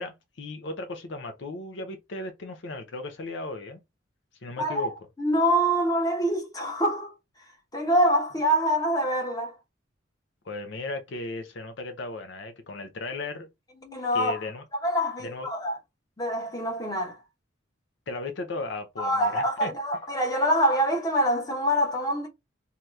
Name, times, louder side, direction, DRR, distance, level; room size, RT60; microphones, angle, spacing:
voice 1, 0.0-3.8 4.4-4.9 10.5-13.5 14.1-14.6 15.2-15.5 18.1-19.7, left 3 dB, 65° left, 0.6 m, -36 dB
voice 2, 4.6-4.9 5.2-7.1 7.7-9.5 13.8-14.5 14.8-15.8 16.2-17.2 19.0-22.3, equal, 20° left, 1.0 m, -25 dB
2.8 x 2.3 x 3.1 m
head